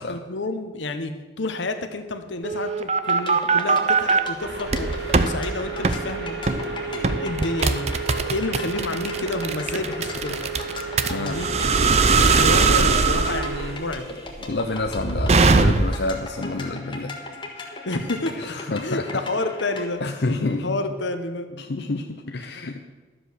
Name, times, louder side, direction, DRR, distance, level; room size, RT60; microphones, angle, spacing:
voice 1, 0.0-7.9 8.3-10.4 11.1-11.5 12.2-14.1 17.9-18.4 18.8-20.0 20.6-21.5, left 2 dB, 90° left, 7 dB, 1.1 m, -29 dB
sound 1, 2.4-4.2 4.7-5.3 5.8-6.0 6.5-6.7 7.0-16.1, right 4 dB, 35° right, 0.5 m, -20 dB
sound 2, 3.0-19.9, left 2 dB, 25° left, 1.4 m, -38 dB
sound 3, 4.4-13.7, right 4 dB, 70° right, 1.7 m, -33 dB
voice 2, 11.1-11.4 14.5-17.1 17.6-17.9 18.4-19.2 20.0-20.8 21.6-22.8, left 2 dB, 70° left, 4 dB, 0.7 m, -29 dB
12.0 x 7.7 x 6.4 m, 1.3 s
head